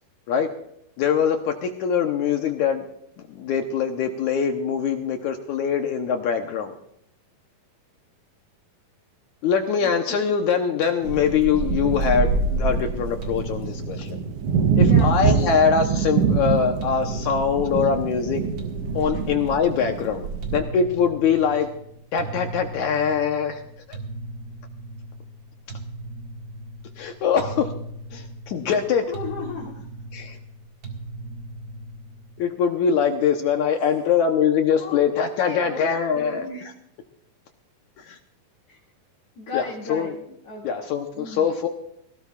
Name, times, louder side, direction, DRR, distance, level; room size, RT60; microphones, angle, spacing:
voice 1, 1.0-2.8 3.2-6.8 9.4-14.2 14.8-18.5 18.9-20.3 20.5-21.7 22.1-23.6 23.9-24.0 27.0-27.7 28.1-29.1 30.1-30.4 32.4-36.5 38.0-38.2 39.5-40.1 40.6-41.7, left 7 dB, 70° left, 5 dB, 2.1 m, -23 dB
voice 2, 9.8-10.2 14.8-15.5 28.6-28.8 29.1-29.9 33.8-33.9 34.7-35.0 35.3-35.9 36.1-36.6 38.7-38.8 39.3-40.7 41.1-41.5, left 3 dB, 45° left, -5 dB, 3.3 m, -35 dB
sound 1, 11.0-20.6, right 5 dB, 80° right, 1.3 m, -24 dB
sound 2, 13.2-32.5, right 2 dB, 40° right, 2.1 m, -38 dB
18.5 x 17.0 x 2.5 m, 0.73 s
omnidirectional pair, 4.2 m